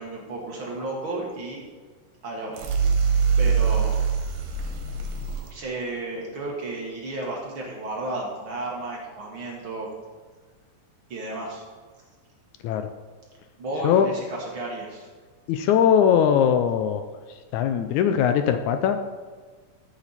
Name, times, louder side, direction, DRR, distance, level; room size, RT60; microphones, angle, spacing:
voice 1, 0.0-1.6 2.2-2.6 3.4-4.1 5.5-9.9 11.1-11.6 13.6-15.1, right 2 dB, 45° right, -2 dB, 2.0 m, -33 dB
sound 1, 2.5-5.5, right 6 dB, 80° right, 2.9 m, -23 dB
voice 2, 15.5-17.0 17.5-19.0, left 8 dB, 80° left, 8 dB, 1.8 m, -20 dB
13.0 x 7.3 x 4.1 m, 1.4 s
omnidirectional pair, 3.8 m